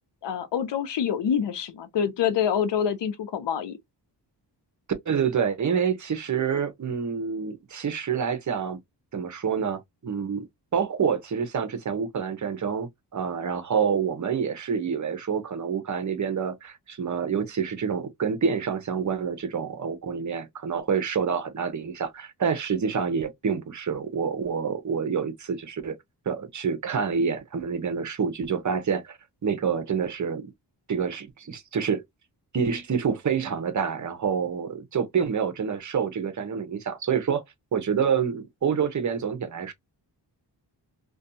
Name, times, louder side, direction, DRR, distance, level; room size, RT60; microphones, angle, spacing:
voice 1, 0.2-3.8, left 8 dB, 75° left, 0.7 m, -26 dB
voice 2, 5.1-8.8 9.1-10.5 10.7-26.0 26.3-30.5 30.9-32.0 32.5-37.4 37.7-39.7, right 6 dB, 45° right, 0.7 m, -27 dB
2.5 x 2.3 x 2.6 m
wide cardioid pair, 100°, 43 cm